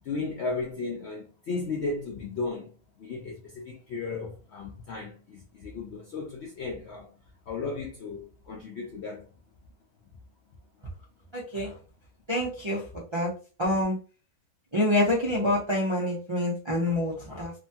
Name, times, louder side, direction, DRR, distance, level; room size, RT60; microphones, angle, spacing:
voice 1, 0.0-2.7 3.0-7.1 7.5-9.3, left 3 dB, 75° left, 0.6 m, -35 dB
voice 2, 11.3-11.8 12.3-13.3 13.6-14.0 14.7-17.5, left 1 dB, 50° right, 0.3 m, -27 dB
3.0 x 2.2 x 2.7 m
omnidirectional pair, 1.6 m